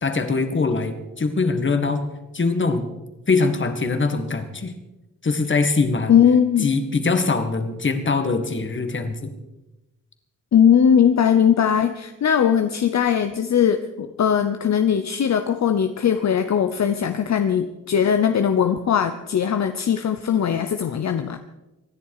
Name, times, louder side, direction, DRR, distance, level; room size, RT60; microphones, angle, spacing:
voice 1, 0.0-2.0 2.3-2.9 3.3-4.7 5.2-6.1 6.6-9.3, left 4 dB, 40° left, 7 dB, 1.9 m, -22 dB
voice 2, 6.1-6.7 10.5-21.4, left 8 dB, 60° left, 9 dB, 0.8 m, -19 dB
25.0 x 10.5 x 4.9 m, 1.0 s
wide cardioid pair, 120°, 31 cm